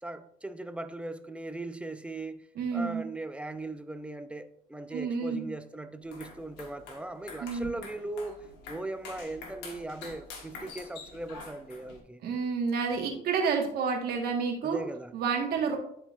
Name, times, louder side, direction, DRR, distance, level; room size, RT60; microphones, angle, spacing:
voice 1, 0.0-2.5 2.7-12.2 14.6-15.2, right 2 dB, 5° right, 0.4 m, -39 dB
voice 2, 2.5-3.0 4.9-5.5 7.4-7.7 12.2-14.8 15.1-15.8, right 5 dB, 70° right, 1.6 m, -29 dB
sound 1, 6.0-12.0, left 4 dB, 90° left, 1.5 m, -46 dB
11.0 x 4.4 x 2.5 m
cardioid pair, 110°, 17 cm